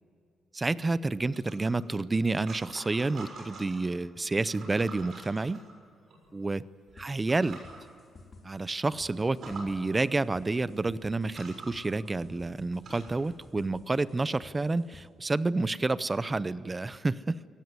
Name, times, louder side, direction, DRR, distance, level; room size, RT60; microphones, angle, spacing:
voice 1, 0.5-5.6 6.3-6.6 7.0-7.6 8.4-17.5, right 3 dB, 15° right, 17 dB, 0.6 m, -29 dB
sound 1, 1.3-3.9 4.3-6.2 6.9-7.0 7.3-7.8 8.3-8.4 8.7-8.8 9.2-9.7 10.7-10.8 11.2-13.3, right 3 dB, 45° right, 6.6 m, -47 dB
sound 2, 7.0-15.0, left 3 dB, 30° left, 3.5 m, -52 dB
23.0 x 18.5 x 9.6 m, 2.4 s
cardioid pair, 160°, 0 cm